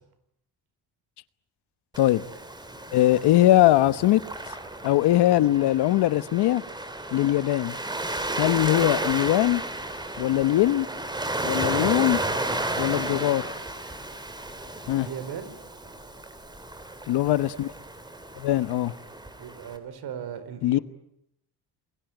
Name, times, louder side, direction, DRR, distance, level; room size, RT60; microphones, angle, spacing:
Waves surf, 1.9-19.8, right 1 dB, 10° right, 3.2 m, -33 dB
voice 1, 2.9-4.2 4.8-6.6 7.1-7.8 8.4-9.6 10.2-10.9 11.4-12.2 12.8-13.4 14.9-15.1 17.1-17.7 18.4-18.9 20.6-20.8, left 14 dB, 75° left, 1.2 m, -21 dB
voice 2, 15.0-15.6 19.4-20.8, right 8 dB, 65° right, 4.5 m, -37 dB
29.0 x 22.0 x 9.2 m
cardioid pair, 155°, 40 cm